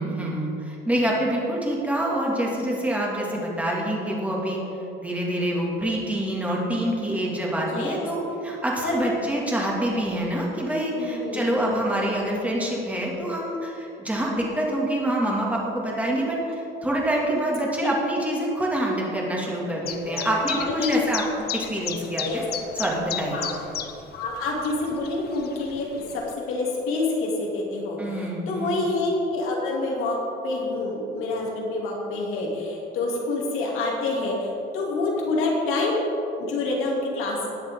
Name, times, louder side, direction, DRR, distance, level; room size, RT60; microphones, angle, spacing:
voice 1, 0.0-4.6 5.0-22.5 22.7-23.5 28.0-28.8, right 1 dB, 5° right, -3 dB, 2.2 m, -26 dB
voice 2, 7.6-8.1 8.8-9.0 11.0-11.4 20.1-20.2 20.6-21.0 22.2-22.4 23.3-23.5 24.1-30.2 30.4-36.0 36.4-37.5, left 2 dB, 80° left, -3 dB, 2.8 m, -27 dB
Chirp tweet, 19.9-26.3, left 9 dB, 50° left, 0.7 m, -35 dB
19.0 x 7.3 x 3.7 m, 3.0 s
cardioid pair, 140°, 21 cm